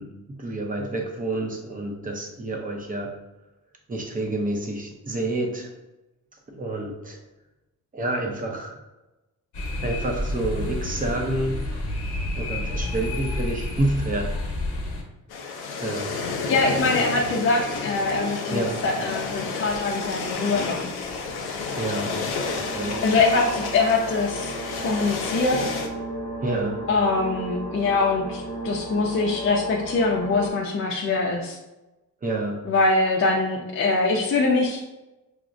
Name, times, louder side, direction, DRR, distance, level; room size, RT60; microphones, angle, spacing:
voice 1, 0.0-3.1 3.9-5.7 6.5-7.2 7.9-8.8 9.8-11.6 12.3-14.3 15.8-16.2 18.5-18.8 21.8-22.2 22.5-23.0 26.4-26.8 32.2-32.7, right 2 dB, 25° right, 1 dB, 0.6 m, -28 dB
sound 1, 9.5-15.0, left 1 dB, 50° left, 1.0 m, -29 dB
sound 2, 15.3-25.9, left 4 dB, 80° left, 0.7 m, -30 dB
voice 2, 16.5-20.9 23.0-24.5 24.8-25.8 26.9-31.6 32.7-34.8, left 3 dB, 35° left, -2 dB, 0.4 m, -23 dB
sound 3, 22.3-30.5, right 1 dB, 65° right, 0.8 m, -34 dB
5.8 x 2.0 x 2.5 m, 1.0 s
cardioid pair, 140°, 37 cm